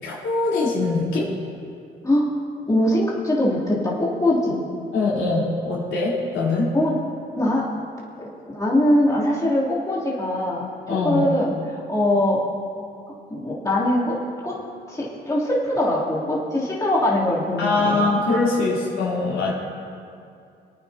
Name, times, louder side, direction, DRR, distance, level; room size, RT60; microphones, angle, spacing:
voice 1, 0.0-1.3 4.9-6.7 10.9-11.3 17.6-19.5, left 3 dB, 75° left, -6 dB, 3.7 m, -22 dB
voice 2, 2.7-4.7 6.7-6.9 7.4-7.7 8.2-12.4 13.3-14.2 14.4-14.5 14.9-18.1, left 1 dB, 15° left, -8 dB, 3.1 m, -22 dB
25.0 x 9.4 x 2.9 m, 2.4 s
cardioid pair, 90°, 20 cm